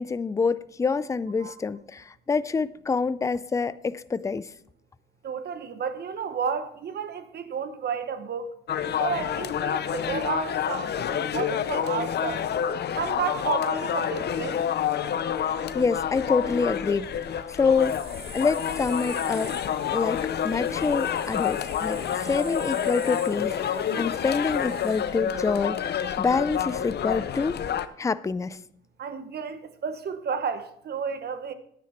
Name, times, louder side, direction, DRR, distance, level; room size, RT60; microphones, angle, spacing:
voice 1, 0.0-4.5 15.7-17.1 17.5-18.0 18.3-19.5 19.9-27.6 28.0-28.6, left 4 dB, 15° left, 0.4 m, -26 dB
voice 2, 5.2-8.6 9.0-12.5 12.9-14.7 29.0-31.5, right 6 dB, 55° right, 1.1 m, -32 dB
sound 1, 8.7-27.9, left 9 dB, 55° left, 0.7 m, -28 dB
Livestock farm animals working animals, 10.0-25.5, right 4 dB, 70° right, 3.5 m, -54 dB
sound 2, 17.8-25.0, right 2 dB, 30° right, 3.6 m, -45 dB
10.5 x 9.3 x 4.4 m
cardioid pair, 90°, 20 cm